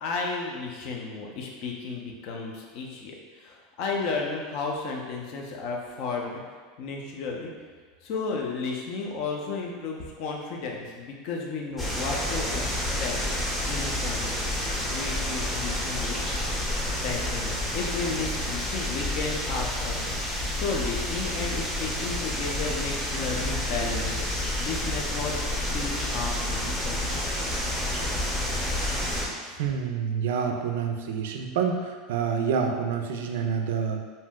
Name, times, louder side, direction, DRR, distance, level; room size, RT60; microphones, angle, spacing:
voice 1, 0.0-6.4 6.8-7.5 8.0-13.1 13.7-16.2 17.0-25.4 25.7-27.2, left 4 dB, 60° left, 0 dB, 0.5 m, -33 dB
sound 1, 11.8-29.3, left 1 dB, 15° left, 0.7 m, -29 dB
voice 2, 29.6-34.0, right 6 dB, 80° right, 4 dB, 0.3 m, -27 dB
2.7 x 2.1 x 3.5 m, 1.5 s
supercardioid pair, 120°, 0 cm